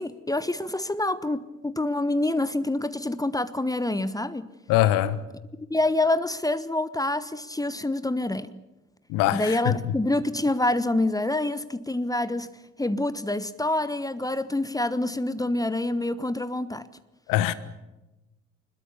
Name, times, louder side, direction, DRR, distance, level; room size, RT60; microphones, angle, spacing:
voice 1, 0.0-4.5 5.7-8.5 9.3-12.5 12.8-16.9, left 2 dB, 10° left, 1.2 m, -26 dB
voice 2, 4.7-5.2 9.1-10.0 17.3-17.5, left 13 dB, 65° left, 1.4 m, -23 dB
25.5 x 21.5 x 6.9 m
figure-of-eight pair, 45°, 36 cm